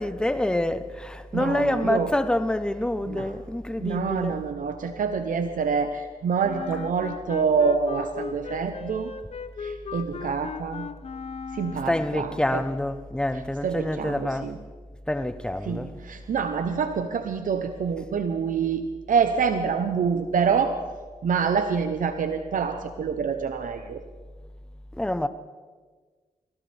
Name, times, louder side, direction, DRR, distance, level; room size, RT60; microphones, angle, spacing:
voice 1, 0.0-4.4 11.8-14.5 15.1-16.0 24.9-25.3, left 1 dB, 5° left, 0.9 m, -27 dB
voice 2, 1.3-2.1 3.1-3.3 3.8-9.1 9.6-10.9 11.5-12.6 13.6-14.6 15.6-20.8 21.2-24.0, right 6 dB, 65° right, 0.9 m, -26 dB
Wind instrument woodwind instrument, 6.4-12.2, left 6 dB, 45° left, 0.8 m, -37 dB
22.0 x 16.0 x 3.5 m
cardioid pair, 55°, 15 cm